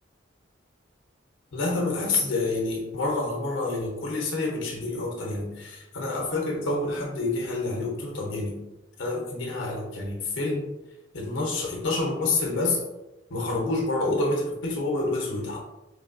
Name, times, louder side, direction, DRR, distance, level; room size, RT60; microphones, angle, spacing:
voice 1, 1.5-8.6 9.0-10.7 11.1-12.8 13.3-15.6, left 2 dB, 75° left, 0 dB, 0.7 m, -28 dB
3.3 x 2.6 x 2.5 m, 0.95 s
head